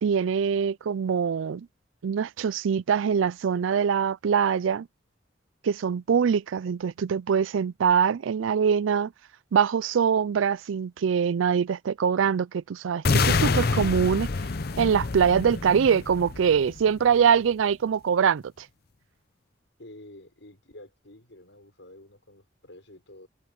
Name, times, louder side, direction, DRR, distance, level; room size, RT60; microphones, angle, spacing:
voice 1, 0.0-1.7 2.0-4.9 5.6-9.1 9.5-14.3 14.8-18.7, right 7 dB, 90° right, 0.4 m, -23 dB
sound 1, 13.0-17.1, left 4 dB, 50° left, 0.7 m, -27 dB
voice 2, 19.8-23.3, left 1 dB, 70° left, 6.2 m, -49 dB
head